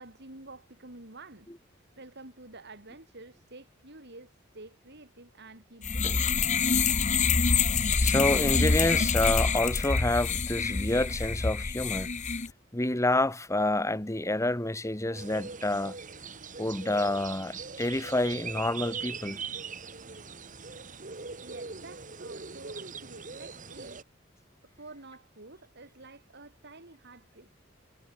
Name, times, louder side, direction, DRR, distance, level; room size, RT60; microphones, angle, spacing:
voice 1, 0.0-1.5 1.7-6.3 21.4-24.0 24.6-27.5, right 2 dB, 55° right, 4.9 m, -49 dB
sound 1, 5.8-12.5, left 5 dB, 35° left, 1.0 m, -26 dB
voice 2, 8.0-12.1 12.7-16.0 16.6-19.4, left 1 dB, 15° left, 1.9 m, -28 dB
sound 2, 15.1-24.0, right 5 dB, 40° right, 2.5 m, -41 dB
head